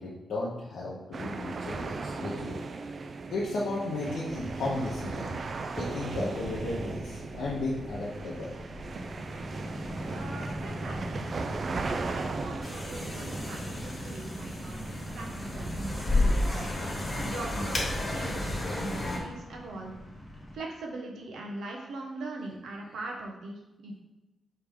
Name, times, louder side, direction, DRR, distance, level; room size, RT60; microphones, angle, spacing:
voice 1, 0.0-2.6 2.9-5.4 5.8-8.5, left 2 dB, 85° left, -5 dB, 0.8 m, -34 dB
sound 1, 1.1-16.8, right 3 dB, 50° right, 0.3 m, -37 dB
sound 2, 4.3-20.6, equal, 5° left, 1.0 m, -42 dB
voice 2, 10.1-11.3 11.9-16.7 17.1-19.9 20.5-24.0, right 2 dB, 90° right, 0 dB, 0.8 m, -41 dB
sound 3, 12.6-19.2, left 2 dB, 25° left, 1.1 m, -32 dB
4.7 x 3.2 x 3.5 m, 1.0 s
cardioid pair, 110°, 0 cm